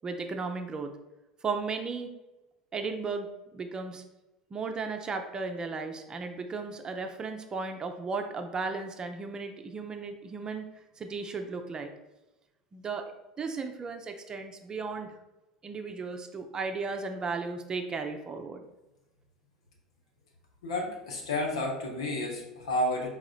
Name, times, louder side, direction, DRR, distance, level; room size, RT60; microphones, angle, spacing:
voice 1, 0.0-0.9 1.4-2.1 2.7-3.3 3.5-4.0 4.5-10.7 11.0-11.9 12.7-13.1 13.4-15.1 15.6-18.6, right 4 dB, 25° right, 5 dB, 0.5 m, -35 dB
voice 2, 20.6-23.1, left 1 dB, 70° left, 0 dB, 1.0 m, -31 dB
4.9 x 3.6 x 2.4 m, 1.0 s
figure-of-eight pair, 70°, 3 cm